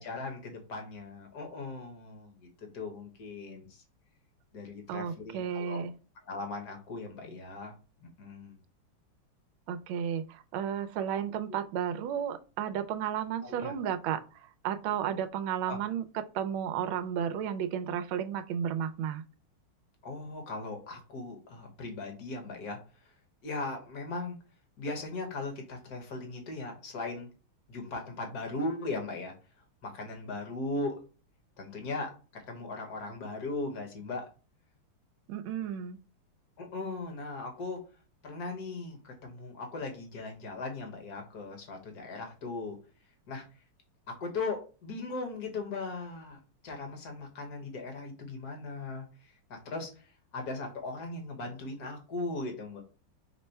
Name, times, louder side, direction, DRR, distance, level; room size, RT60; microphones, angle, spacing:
voice 1, 0.0-2.5 2.7-3.8 4.5-5.8 6.3-7.7 8.0-8.6 11.5-11.6 13.4-13.7 15.7-15.8 20.0-22.8 23.4-24.4 24.8-27.3 27.7-29.3 29.8-30.9 31.6-34.3 36.6-37.8 38.2-42.8 43.3-43.4 44.1-50.1 50.3-52.8, left 3 dB, 50° left, 3 dB, 1.5 m, -38 dB
voice 2, 4.9-5.9 9.7-14.2 14.6-19.2 35.3-36.0, right 9 dB, 75° right, 9 dB, 1.3 m, -33 dB
5.3 x 2.1 x 4.4 m, 0.35 s
omnidirectional pair, 2.4 m